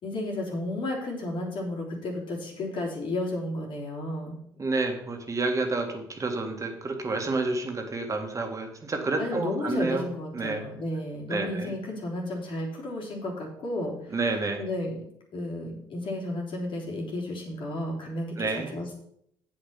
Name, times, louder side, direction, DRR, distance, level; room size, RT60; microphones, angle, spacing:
voice 1, 0.0-4.4 9.2-14.2 14.6-15.0 15.3-18.9, left 1 dB, 60° left, -2 dB, 3.5 m, -33 dB
voice 2, 4.6-10.1 10.3-10.6 11.3-11.7 14.1-14.6 18.4-18.7, right 3 dB, 30° right, 4 dB, 1.9 m, -29 dB
7.9 x 7.2 x 5.8 m, 0.72 s
supercardioid pair, 70°, 10 cm